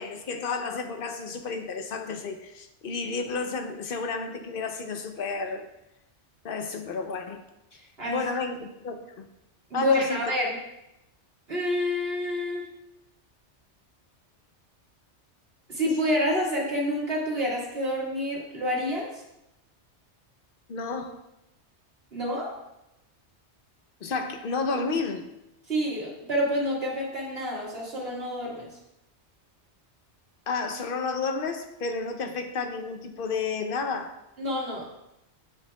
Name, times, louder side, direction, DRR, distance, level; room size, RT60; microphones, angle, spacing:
voice 1, 0.0-5.7 6.4-7.4 8.1-9.3 9.7-10.2 20.7-21.2 24.0-25.3 30.5-34.2, left 4 dB, 55° left, 6 dB, 0.8 m, -31 dB
voice 2, 9.7-10.6 11.5-12.6 15.7-19.1 22.1-22.6 25.7-28.7 34.4-34.9, equal, 60° right, -4 dB, 2.0 m, -28 dB
8.8 x 7.0 x 2.3 m, 0.89 s
omnidirectional pair, 1.2 m